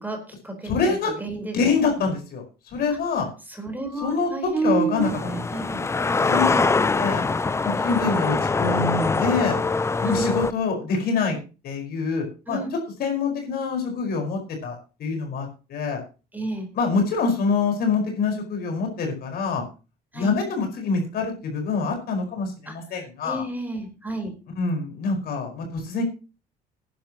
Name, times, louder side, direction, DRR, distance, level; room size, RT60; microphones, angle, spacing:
voice 1, 0.0-1.7 3.5-5.8 6.4-6.7 10.0-10.3 12.5-12.7 16.3-16.7 20.1-20.4 22.7-24.3, right 3 dB, 10° right, 3 dB, 4.4 m, -30 dB
voice 2, 0.6-1.1 1.5-3.3 4.0-5.6 6.3-6.4 7.0-7.3 7.6-9.6 10.0-11.4 11.6-12.6 13.0-16.0 16.7-19.6 20.1-23.5 24.6-26.0, left 4 dB, 65° left, 3 dB, 5.2 m, -25 dB
sound 1, 5.0-10.5, left 4 dB, 15° left, 0.5 m, -23 dB
19.0 x 10.5 x 3.1 m, 0.32 s
cardioid pair, 110°, 17 cm